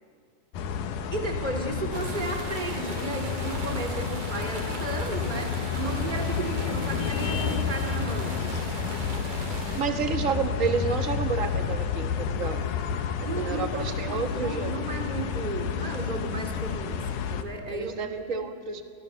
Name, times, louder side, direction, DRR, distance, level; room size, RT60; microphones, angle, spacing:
sound 1, 0.5-17.4, left 6 dB, 80° left, 2.7 m, -30 dB
voice 1, 1.1-8.6 13.2-18.0 18.3-18.4, right 2 dB, 15° right, 2 dB, 2.7 m, -34 dB
sound 2, 1.9-9.8, right 3 dB, 70° right, 4.4 m, -39 dB
voice 2, 3.7-4.5 9.7-12.6 13.2-14.7 17.7-18.8, right 5 dB, 50° right, 6 dB, 0.9 m, -30 dB
29.0 x 24.5 x 7.0 m, 2.2 s
omnidirectional pair, 3.6 m